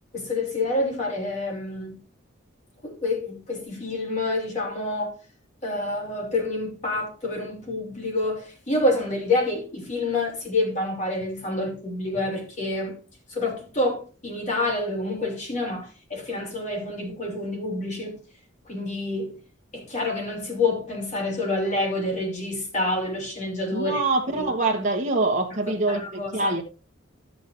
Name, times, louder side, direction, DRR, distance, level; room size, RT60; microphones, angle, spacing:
voice 1, 0.1-2.0 2.8-5.1 5.6-12.9 13.3-18.2 18.7-19.4 19.7-24.0 24.3-24.4 25.9-26.5, left 2 dB, 40° left, 3.0 m, -28 dB
voice 2, 23.7-26.6, right 2 dB, 40° right, 1.2 m, -25 dB
14.0 x 7.0 x 2.6 m
head